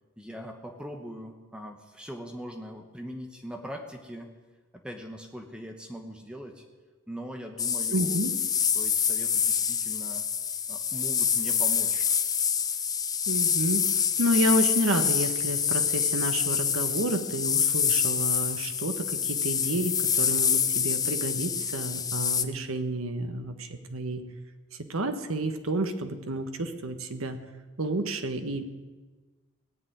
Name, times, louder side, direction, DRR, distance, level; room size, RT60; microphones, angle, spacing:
voice 1, 0.2-4.3 4.7-6.6 7.1-8.2 8.7-10.3 10.7-12.1, equal, 5° right, 3 dB, 1.0 m, -41 dB
sound 1, 7.6-22.4, left 7 dB, 15° left, 0.5 m, -26 dB
voice 2, 7.9-8.3 13.3-24.2 24.9-27.4 27.8-28.6, right 1 dB, 85° right, 7 dB, 1.3 m, -30 dB
17.5 x 6.9 x 9.3 m, 1.3 s
head